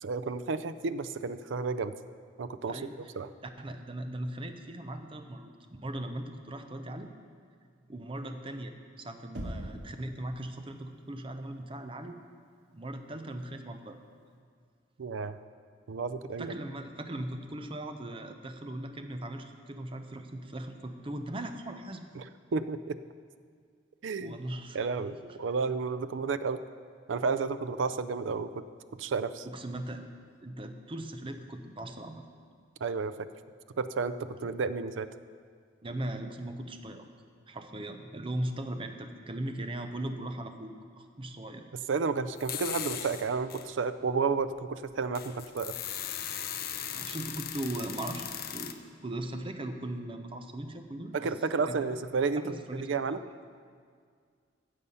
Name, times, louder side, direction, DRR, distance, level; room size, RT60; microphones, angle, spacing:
voice 1, 0.0-1.9 2.4-2.8 3.2-3.3 15.0-15.4 15.9-16.5 22.2-22.3 22.5-23.0 24.0-24.3 24.7-26.6 27.1-28.6 29.0-29.5 32.8-33.1 33.8-35.1 41.9-45.7 51.1-52.5 52.8-53.2, right 4 dB, 85° right, 13 dB, 0.5 m, -31 dB
voice 2, 2.7-3.1 3.6-5.5 5.8-7.1 7.9-12.2 12.7-14.0 16.4-22.0 24.2-24.8 25.2-25.4 29.4-30.0 30.4-32.2 35.8-37.1 37.5-41.6 46.9-52.0 52.4-53.2, right 1 dB, 30° right, 6 dB, 0.7 m, -39 dB
Knock, 9.3-10.0, equal, 65° right, 1.7 m, -38 dB
sound 1, 42.4-43.7 44.3-44.4 44.9-48.7, left 10 dB, 55° left, 0.6 m, -38 dB
15.5 x 6.9 x 5.5 m, 2.1 s
head